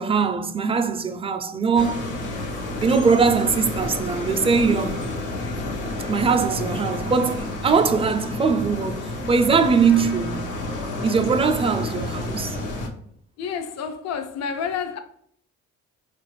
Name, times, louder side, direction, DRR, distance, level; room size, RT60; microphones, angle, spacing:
voice 1, 0.0-2.1 2.8-5.0 6.1-10.5 11.0-12.6, right 5 dB, 20° right, 0.3 m, -21 dB
sound 1, 1.8-12.9, left 2 dB, 90° left, 0.8 m, -30 dB
voice 2, 13.4-15.0, left 7 dB, 60° left, 0.5 m, -29 dB
4.3 x 2.4 x 3.0 m
cardioid pair, 90°, 30 cm